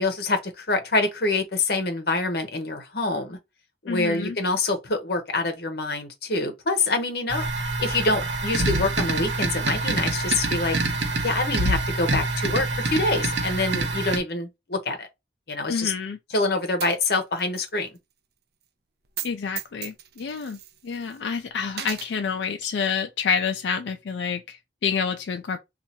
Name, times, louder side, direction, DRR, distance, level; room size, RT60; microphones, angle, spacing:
voice 1, 0.0-3.4 3.8-7.5 7.8-10.8 11.2-15.1 15.5-15.9 16.3-17.9, left 3 dB, 60° left, 0.9 m, -26 dB
voice 2, 3.9-4.4 15.7-16.2 19.2-20.6 20.8-25.6, left 6 dB, 85° left, 0.4 m, -28 dB
sound 1, 7.3-14.2, right 2 dB, 85° right, 1.0 m, -26 dB
Coin (dropping), 16.8-17.7 18.0-18.1 19.0-19.3 19.6-21.2 21.7-22.1, right 10 dB, 60° right, 0.5 m, -36 dB
2.7 x 2.4 x 4.2 m
head